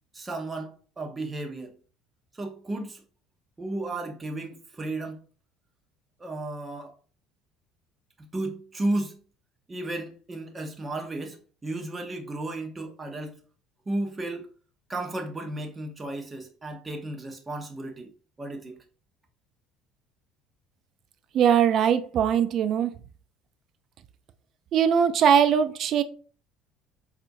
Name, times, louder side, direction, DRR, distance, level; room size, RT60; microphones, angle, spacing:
voice 1, 0.1-1.8 2.3-3.0 3.6-5.2 6.2-6.9 8.2-9.2 9.7-13.4 13.9-14.5 14.9-18.1 18.4-18.8, right 2 dB, 20° right, 0.8 m, -33 dB
voice 2, 21.3-22.9 24.7-26.0, right 8 dB, 50° right, 0.4 m, -21 dB
4.3 x 2.5 x 2.6 m
supercardioid pair, 100°, 0 cm